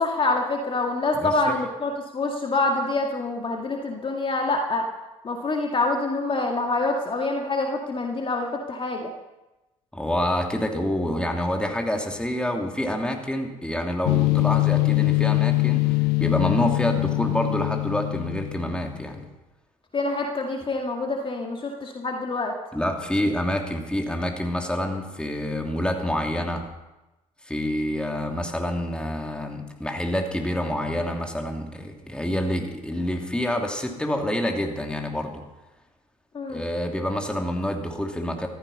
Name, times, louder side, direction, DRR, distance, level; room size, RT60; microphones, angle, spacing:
voice 1, 0.0-4.9 5.2-9.1 19.9-22.5 36.3-36.6, left 2 dB, 30° left, 2 dB, 2.0 m, -26 dB
voice 2, 1.1-1.6 9.9-19.3 22.7-26.7 27.4-35.4 36.5-38.5, left 1 dB, 5° left, 2 dB, 2.8 m, -27 dB
sound 1, 14.1-18.9, left 25 dB, 65° left, 0.5 m, -23 dB
15.0 x 14.5 x 5.5 m, 1.0 s
hypercardioid pair, 60°, 17 cm